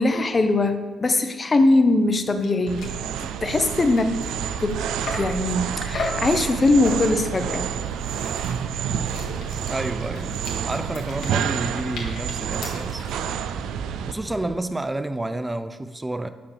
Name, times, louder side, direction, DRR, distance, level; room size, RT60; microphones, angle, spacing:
voice 1, 0.0-4.2 4.6-4.9 5.1-7.7, left 2 dB, 30° left, 8 dB, 0.7 m, -21 dB
sound 1, 2.1-2.2 2.4-2.5 2.8-3.0 3.4-5.4 5.9-6.3 6.8-7.3 7.8-13.2, left 3 dB, 75° left, 1.5 m, -37 dB
sound 2, 2.7-14.1, right 9 dB, 85° right, 0.3 m, -29 dB
sound 3, 4.1-14.6, right 2 dB, 30° right, 0.9 m, -40 dB
voice 2, 9.7-10.4 10.6-13.1 14.1-16.3, right 2 dB, 15° right, 11 dB, 0.4 m, -30 dB
6.0 x 4.8 x 6.4 m, 1.3 s
cardioid pair, 90°, 0 cm